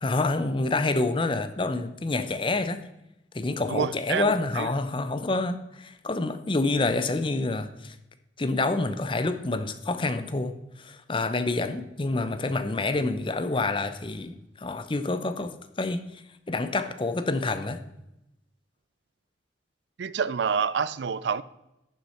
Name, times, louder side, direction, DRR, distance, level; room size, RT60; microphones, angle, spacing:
voice 1, 0.0-2.8 3.3-7.9 8.4-10.5 10.8-16.2 16.5-17.8, left 2 dB, 25° left, 0.6 m, -27 dB
voice 2, 3.7-4.7 20.0-21.4, right 6 dB, 65° right, 0.4 m, -28 dB
11.0 x 6.5 x 4.3 m
head